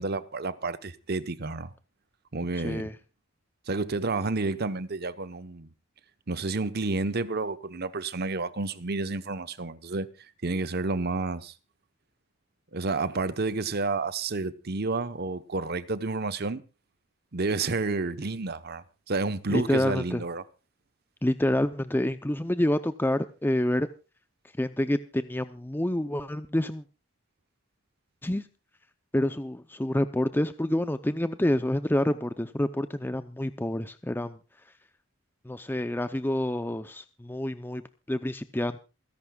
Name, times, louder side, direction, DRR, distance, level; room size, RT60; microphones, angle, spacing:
voice 1, 0.0-1.7 2.3-2.9 3.7-5.7 6.3-10.1 10.4-11.5 12.7-16.6 17.3-20.4, right 3 dB, 50° right, 0.9 m, -30 dB
voice 2, 2.5-3.0 19.5-20.2 21.2-23.9 24.6-26.8 28.2-28.5 29.1-34.4 35.4-37.8 38.1-38.8, left 1 dB, 10° left, 0.6 m, -28 dB
28.0 x 11.0 x 2.3 m
head